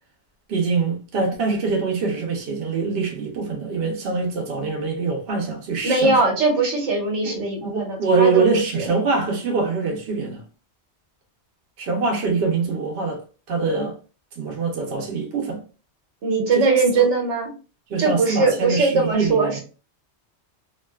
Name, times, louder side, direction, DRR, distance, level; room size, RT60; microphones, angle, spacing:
voice 1, 0.5-6.2 7.2-10.4 11.8-13.2 13.5-14.0 14.4-15.6 17.0-17.1 17.9-19.6, right 4 dB, 65° right, 0.8 m, -24 dB
voice 2, 5.8-8.4 8.7-8.9 16.2-17.5 18.0-19.6, right 3 dB, 90° right, 1.2 m, -20 dB
2.4 x 2.3 x 2.2 m
omnidirectional pair, 1.2 m